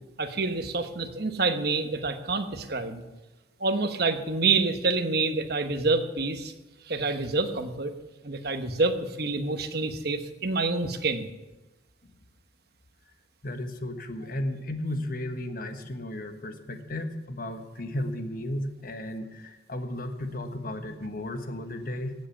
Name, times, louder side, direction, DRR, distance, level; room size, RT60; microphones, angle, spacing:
voice 1, 0.2-3.0 3.6-6.5 6.9-7.9 8.2-11.3, right 3 dB, 50° right, 7 dB, 1.1 m, -27 dB
voice 2, 13.4-22.1, left 1 dB, 45° left, 7 dB, 1.2 m, -34 dB
16.5 x 7.6 x 7.1 m, 1.1 s
head